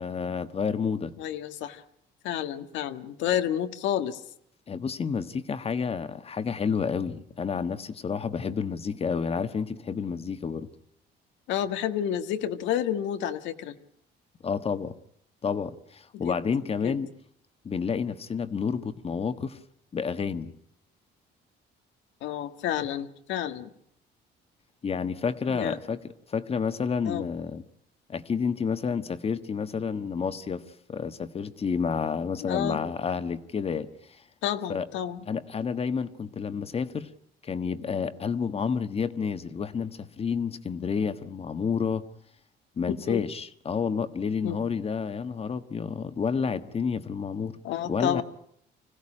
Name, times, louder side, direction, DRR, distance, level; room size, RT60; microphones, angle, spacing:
voice 1, 0.0-1.1 4.7-10.7 14.4-15.0 15.4-17.1 17.6-19.6 19.9-20.5 24.8-27.6 28.1-30.6 30.9-34.2 34.7-34.9 35.3-37.1 37.4-42.0 42.8-47.6 47.9-48.2, left 6 dB, 30° left, 11 dB, 1.4 m, -30 dB
voice 2, 1.2-1.8 2.2-4.2 11.5-13.8 16.2-16.4 16.8-17.0 22.2-23.7 25.5-25.8 27.0-27.3 32.4-32.8 34.4-35.2 43.1-43.2 44.4-44.6 47.6-48.2, left 10 dB, 85° left, 8 dB, 1.6 m, -30 dB
26.0 x 16.5 x 9.9 m, 0.72 s
cardioid pair, 125°, 19 cm